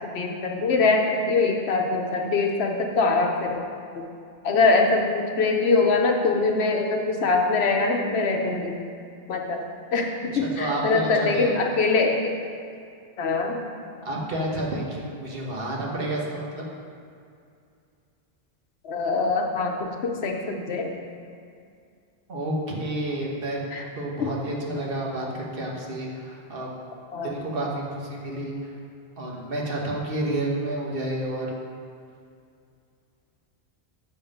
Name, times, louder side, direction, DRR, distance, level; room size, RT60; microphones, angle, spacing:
voice 1, 0.0-3.6 4.0-4.1 4.4-8.8 9.3-9.6 9.9-12.3 13.2-13.6 18.8-20.9 23.7-23.9 24.2-24.3 27.1-27.4, left 3 dB, 75° left, 2 dB, 1.1 m, -23 dB
voice 2, 10.3-11.5 14.0-16.7 22.3-26.7 27.2-28.7 29.2-31.5, right 1 dB, 60° right, -2 dB, 1.4 m, -30 dB
7.3 x 5.4 x 5.3 m, 2.4 s
omnidirectional pair, 1.1 m